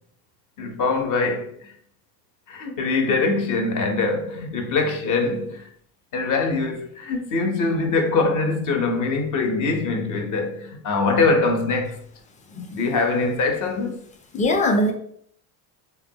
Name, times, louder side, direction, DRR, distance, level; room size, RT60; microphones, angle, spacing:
voice 1, 0.6-1.7 2.5-5.7 6.1-12.0 12.7-14.0, left 3 dB, 40° left, 0.8 m, -23 dB
voice 2, 14.3-14.9, left 1 dB, 15° left, 0.4 m, -21 dB
3.5 x 2.3 x 2.7 m
supercardioid pair, 115°, 46 cm